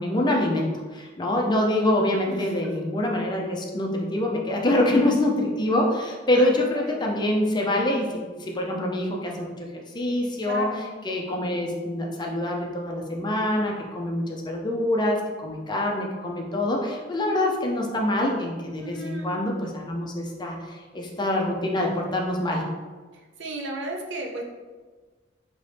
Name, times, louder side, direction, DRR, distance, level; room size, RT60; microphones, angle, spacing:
voice 1, 0.0-9.7 9.9-10.7 11.0-22.6, left 1 dB, 25° left, 0 dB, 0.5 m, -25 dB
voice 2, 2.3-2.7 6.3-7.1 10.4-11.0 18.8-19.4 23.1-24.4, right 1 dB, 65° right, 0 dB, 0.7 m, -35 dB
4.2 x 3.0 x 3.3 m, 1.4 s
head